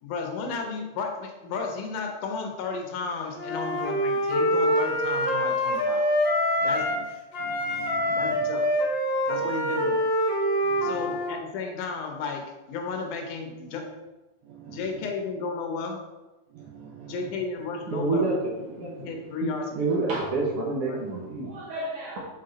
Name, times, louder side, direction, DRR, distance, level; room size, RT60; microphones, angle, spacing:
voice 1, 0.0-6.1 6.6-6.9 8.1-8.7 9.3-10.0 10.8-13.9 14.6-16.0 17.0-18.4 18.8-20.2 20.5-21.0, left 4 dB, 80° left, 3 dB, 2.4 m, -34 dB
Wind instrument woodwind instrument, 3.4-7.0 7.3-11.3, equal, 50° left, 1.4 m, -25 dB
voice 2, 6.6-7.0 7.4-8.5 9.3-9.5 10.6-11.2 14.4-15.1 16.5-17.4, right 8 dB, 80° right, 0 dB, 1.5 m, -45 dB
voice 3, 17.9-18.3 18.7-18.9 19.8-22.2, right 3 dB, 60° right, -4 dB, 1.7 m, -28 dB
6.6 x 4.7 x 3.9 m, 1.1 s
omnidirectional pair, 3.6 m